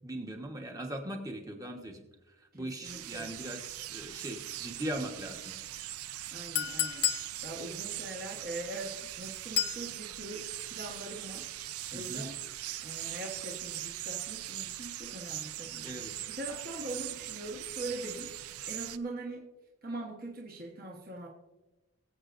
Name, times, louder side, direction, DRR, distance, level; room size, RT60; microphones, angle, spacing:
voice 1, 0.0-2.0 2.5-5.6 11.9-12.2 15.8-16.1, right 1 dB, 15° right, 3 dB, 1.2 m, -39 dB
voice 2, 2.5-3.3 6.3-7.1 7.4-11.5 11.9-12.4 12.8-19.5 19.8-21.3, right 2 dB, 40° right, -1 dB, 1.4 m, -42 dB
sound 1, 2.8-19.0, right 13 dB, 80° right, 0.5 m, -41 dB
Chink clink, 6.6-7.3 9.6-9.8, left 11 dB, 50° left, 0.8 m, -30 dB
23.0 x 8.1 x 2.6 m, 1.1 s
head